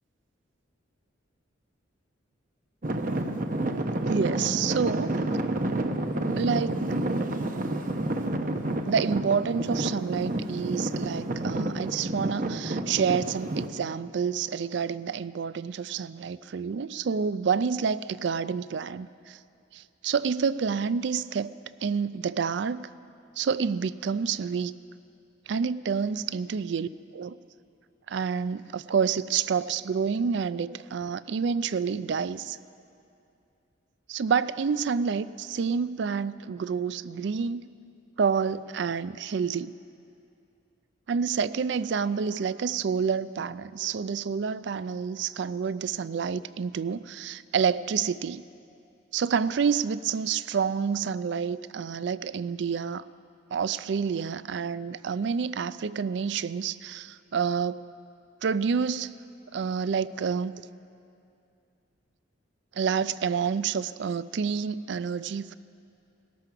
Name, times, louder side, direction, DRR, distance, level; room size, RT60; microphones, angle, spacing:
Traffic noise roadway noise / Engine, 2.8-13.7, right 1 dB, 40° right, 0.7 m, -29 dB
voice 1, 4.1-5.1 6.4-6.8 8.9-19.4 19.7-21.6 21.8-22.8 23.4-24.7 25.5-27.4 28.1-32.6 34.1-37.7 38.2-39.7 41.1-48.4 49.1-53.1 53.5-57.8 58.4-59.1 59.5-60.5 62.7-65.6, right 6 dB, 60° right, 16 dB, 0.3 m, -28 dB
18.0 x 13.5 x 5.8 m, 2.6 s
head